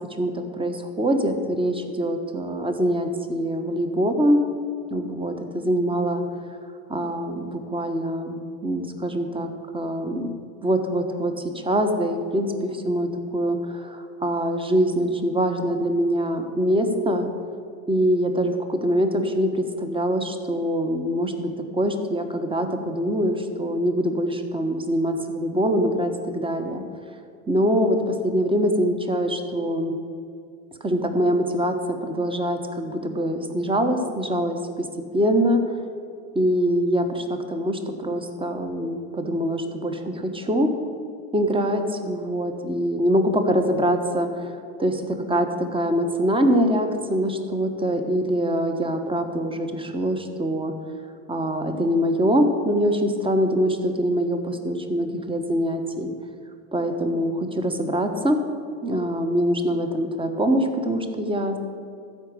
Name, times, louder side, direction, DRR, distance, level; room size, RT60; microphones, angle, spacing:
voice 1, 0.1-4.4 4.9-6.2 6.9-10.4 10.6-17.3 17.9-26.8 27.5-30.0 30.8-34.9 35.1-35.6 36.3-40.7 41.3-50.7 51.3-56.1 56.7-58.4 58.8-61.6, equal, 15° right, 6 dB, 1.4 m, -24 dB
13.5 x 5.2 x 8.6 m, 2.4 s
hypercardioid pair, 85°, 40 cm